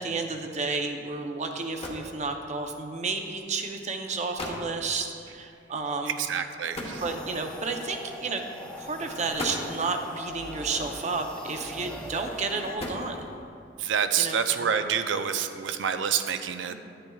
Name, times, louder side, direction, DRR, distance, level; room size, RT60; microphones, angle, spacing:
voice 1, 0.0-6.2 7.0-8.4 8.8-13.3 14.2-14.4, right 4 dB, 40° right, 4 dB, 0.6 m, -31 dB
sound 1, 1.2-1.3 1.6-2.2 3.2-3.4 4.0-4.1 4.4-4.7 6.7-7.6 8.5-8.7 9.2-9.9 11.1-11.6 12.4-13.5, left 1 dB, 35° left, 1.1 m, -37 dB
voice 2, 6.1-7.0 13.8-16.7, right 7 dB, 85° right, 9 dB, 0.5 m, -27 dB
sound 2, 7.0-12.8, left 1 dB, 5° left, 0.5 m, -41 dB
10.0 x 10.0 x 2.3 m, 2.5 s
head